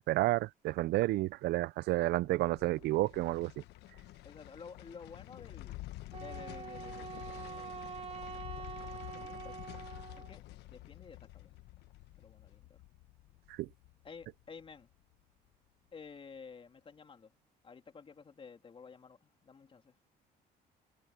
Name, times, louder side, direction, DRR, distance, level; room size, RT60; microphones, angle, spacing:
voice 1, 0.0-3.5 13.6-13.7, right 17 dB, 75° right, 0.5 m, -30 dB
sound 1, 2.0-15.1 15.5-15.6, left 17 dB, 85° left, 1.2 m, -49 dB
voice 2, 4.2-5.8 6.1-8.0 9.1-9.6 10.2-10.4 10.7-11.6 12.2-12.8 14.0-14.9 15.9-17.4 17.6-20.0, left 5 dB, 30° left, 3.2 m, -52 dB
Wind instrument woodwind instrument, 6.1-10.4, right 6 dB, 35° right, 1.7 m, -45 dB
cardioid pair, 110°, 17 cm